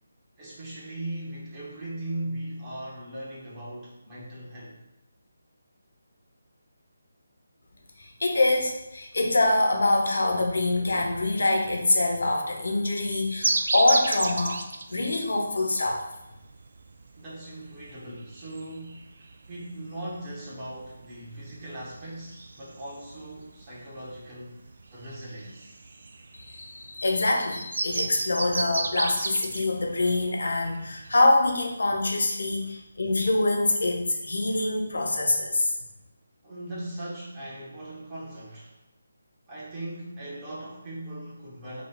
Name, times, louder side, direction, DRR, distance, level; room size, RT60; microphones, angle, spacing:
voice 1, 0.4-4.8 9.1-9.2 17.2-24.6 24.9-25.7 36.4-38.7 39.5-41.8, right 1 dB, 20° right, -7 dB, 1.1 m, -39 dB
voice 2, 8.0-14.6 14.9-16.0 26.3-35.7, left 2 dB, 60° left, 2 dB, 0.8 m, -25 dB
sound 1, 13.4-31.3, right 3 dB, 55° right, 0.4 m, -34 dB
5.3 x 2.3 x 3.3 m, 0.90 s
figure-of-eight pair, 150°, 0 cm